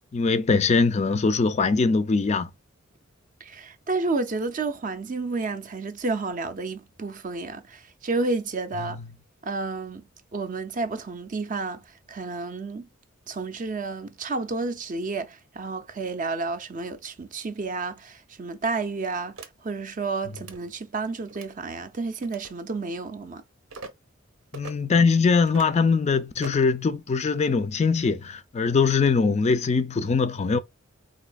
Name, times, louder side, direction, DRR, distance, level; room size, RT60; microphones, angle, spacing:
voice 1, 0.1-2.5 24.5-30.6, left 4 dB, 30° left, 0.4 m, -22 dB
voice 2, 3.4-9.0 9.4-10.0 10.3-11.8 12.1-12.9 13.3-23.4, right 3 dB, 40° right, 0.5 m, -31 dB
sound 1, 19.4-19.5 20.3-20.6 21.3-21.5 22.2-22.5 23.7-23.9 24.5-24.7 25.4-25.8 26.4-26.7, right 3 dB, 85° right, 0.7 m, -41 dB
4.1 x 2.7 x 2.3 m
head